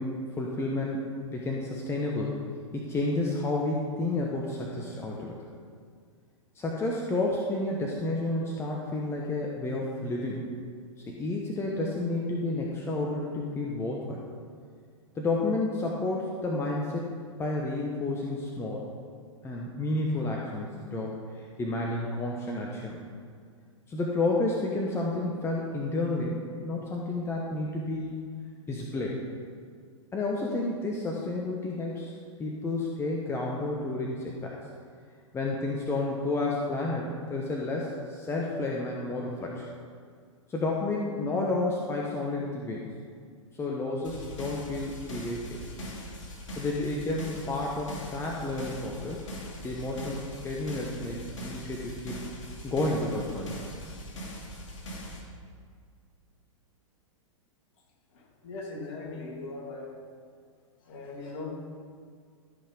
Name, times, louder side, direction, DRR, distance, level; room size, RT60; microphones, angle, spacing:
voice 1, 0.0-2.4 2.7-5.3 6.5-10.5 11.0-14.2 15.1-18.9 19.4-23.0 23.9-28.2 28.7-29.2 30.1-32.1 32.4-34.6 35.3-39.7 40.5-42.9 43.5-45.6 46.5-49.4 49.6-52.4 52.6-53.6, left 2 dB, 15° left, -2 dB, 1.2 m, -31 dB
sound 1, 44.0-55.2, equal, 65° left, 2.7 m, -41 dB
voice 2, 58.1-59.9 60.8-61.8, left 3 dB, 45° left, -2 dB, 2.9 m, -39 dB
13.5 x 5.7 x 5.3 m, 2.1 s
figure-of-eight pair, 105°, 17 cm